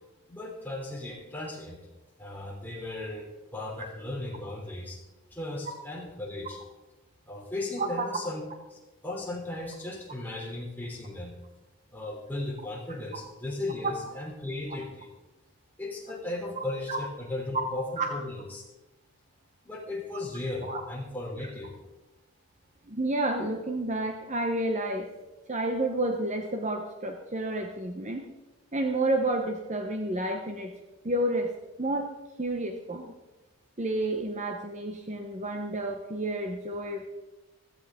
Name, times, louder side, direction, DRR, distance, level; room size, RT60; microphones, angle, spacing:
voice 1, 0.3-1.8 2.2-5.0 5.3-6.6 7.3-8.4 8.7-11.4 11.9-15.1 15.8-18.6 19.6-21.7, left 2 dB, 10° left, -3 dB, 3.1 m, -36 dB
voice 2, 16.6-17.0 17.5-17.7 18.0-18.1 20.6-20.8 22.9-25.1 25.5-28.3 28.7-30.7 31.0-31.5 31.8-32.1 32.4-33.1 33.8-37.1, right 1 dB, 30° right, 4 dB, 0.9 m, -30 dB
15.5 x 14.0 x 3.7 m, 1.1 s
head